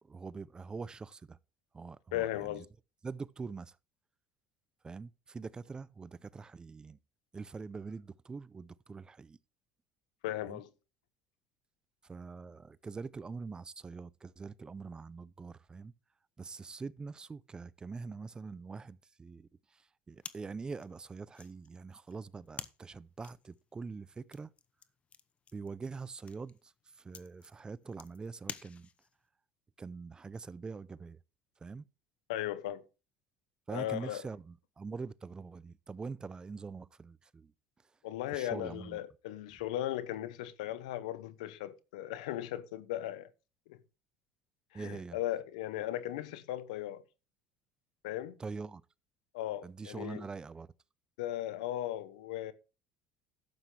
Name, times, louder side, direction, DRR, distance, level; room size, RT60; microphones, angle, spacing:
voice 1, 0.0-1.4 1.7-2.7 3.0-3.8 4.8-7.0 7.3-9.4 10.4-10.6 12.0-15.9 16.4-24.5 25.5-28.9 29.8-31.2 31.6-31.9 33.7-37.5 38.3-39.0 44.7-45.2 48.4-48.8 49.6-50.7, right 4 dB, 20° right, 0.5 m, -44 dB
voice 2, 2.1-2.7 10.2-10.7 32.3-32.8 33.7-34.2 38.0-43.3 43.7-43.8 44.7-47.0 48.0-48.4 49.3-50.2 51.2-52.5, left 13 dB, 90° left, 0.9 m, -37 dB
sound 1, 20.2-29.2, left 7 dB, 35° left, 0.8 m, -51 dB
12.0 x 8.2 x 3.3 m
supercardioid pair, 95°, 4 cm